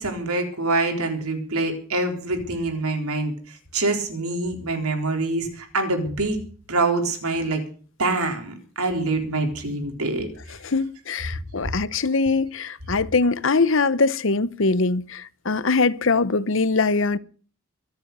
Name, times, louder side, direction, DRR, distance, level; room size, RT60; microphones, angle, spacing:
voice 1, 0.0-6.4 6.7-7.6 8.0-10.3 11.6-11.7, right 2 dB, 85° right, 4.0 m, -25 dB
voice 2, 10.6-17.2, left 3 dB, 60° left, 0.8 m, -22 dB
23.5 x 8.0 x 6.7 m
head